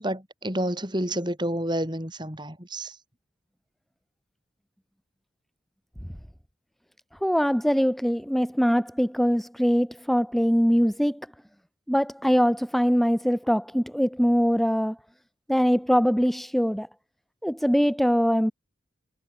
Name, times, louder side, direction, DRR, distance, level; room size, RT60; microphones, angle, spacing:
voice 1, 0.0-2.9, right 1 dB, 20° right, 6.5 m, -29 dB
voice 2, 7.2-11.2 11.9-15.0 15.5-16.9 17.4-18.5, equal, ahead, 0.9 m, -22 dB
head